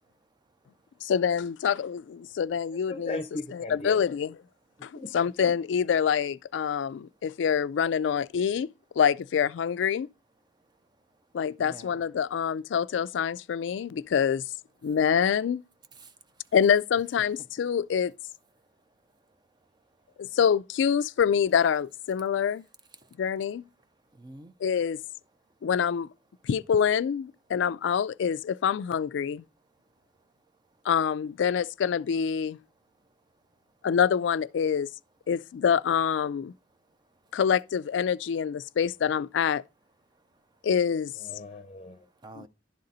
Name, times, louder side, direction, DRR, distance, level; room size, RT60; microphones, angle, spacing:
voice 1, 1.0-3.2 3.5-4.3 4.8-8.7 9.0-10.1 11.3-14.4 14.8-15.6 16.5-18.1 20.2-22.6 23.2-23.6 24.6-25.0 25.6-26.1 26.4-29.4 30.9-32.6 33.8-34.9 35.3-36.5 37.3-39.6 40.6-41.1 42.4-42.5, left 7 dB, 75° left, 0.3 m, -26 dB
voice 2, 2.9-4.1 4.9-5.1 41.2-42.0, left 2 dB, 35° left, 0.6 m, -37 dB
voice 3, 11.6-12.1 15.9-16.5 19.3-19.4 20.1-20.2 23.0-23.2 24.1-24.5 40.3-40.4 42.2-42.5, right 2 dB, 25° right, 0.5 m, -49 dB
11.5 x 3.9 x 4.1 m
head